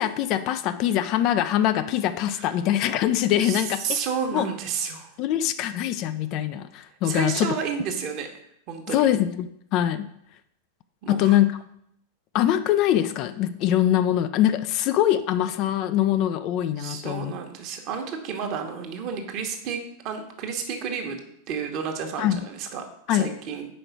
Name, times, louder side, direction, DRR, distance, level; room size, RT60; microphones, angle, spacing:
voice 1, 0.0-4.0 4.3-4.5 5.2-7.6 8.9-10.1 11.1-11.5 12.3-17.3 22.2-22.4 23.1-23.3, left 11 dB, 40° left, 11 dB, 0.4 m, -23 dB
voice 2, 3.4-5.1 7.0-8.3 8.7-9.1 11.0-11.4 16.8-19.8 20.0-23.7, right 6 dB, 40° right, 4 dB, 1.2 m, -31 dB
5.1 x 4.8 x 6.1 m, 0.74 s
figure-of-eight pair, 90°, 0 cm